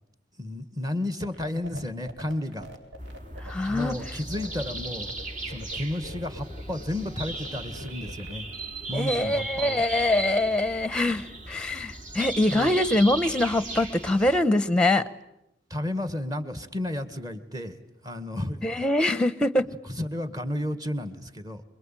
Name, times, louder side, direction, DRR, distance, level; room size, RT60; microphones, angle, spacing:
voice 1, 0.4-2.7 3.7-5.1 5.4-8.5 8.9-9.8 12.5-12.8 15.7-17.8 18.0-18.7 19.8-21.6, left 1 dB, 20° right, 11 dB, 1.8 m, -32 dB
sound 1, 1.2-8.5, equal, 75° right, 4.7 m, -44 dB
sound 2, 3.0-14.4, right 2 dB, 45° right, 3.2 m, -37 dB
voice 2, 3.4-4.0 8.9-15.0 18.6-19.7, left 1 dB, 5° left, 16 dB, 0.9 m, -24 dB
27.5 x 22.5 x 9.1 m, 0.85 s
head